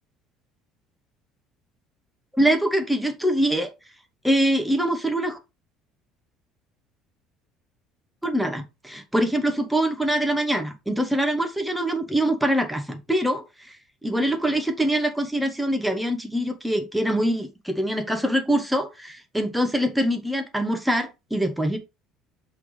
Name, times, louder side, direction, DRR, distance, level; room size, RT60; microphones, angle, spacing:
voice 1, 2.3-3.7 4.2-5.4 8.2-13.7 14.0-21.8, right 1 dB, ahead, 1.0 m, -24 dB
5.8 x 3.4 x 4.9 m
cardioid pair, 175°, 0 cm